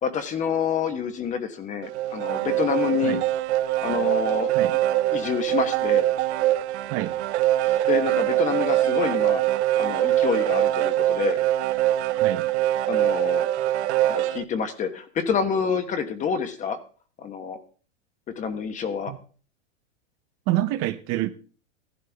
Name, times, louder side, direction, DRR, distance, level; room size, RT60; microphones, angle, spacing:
voice 1, 0.0-3.2 3.8-4.5 5.1-6.0 7.6-9.4 9.8-11.4 12.9-13.5 14.1-16.8 17.2-17.6 18.4-19.1, left 7 dB, 20° left, 1.3 m, -27 dB
sound 1, 1.8-14.4, right 14 dB, 70° right, 0.9 m, -23 dB
voice 2, 12.1-12.5 19.1-19.2 20.5-21.3, right 15 dB, 40° right, 0.8 m, -27 dB
15.0 x 11.0 x 3.5 m
supercardioid pair, 155°, 34 cm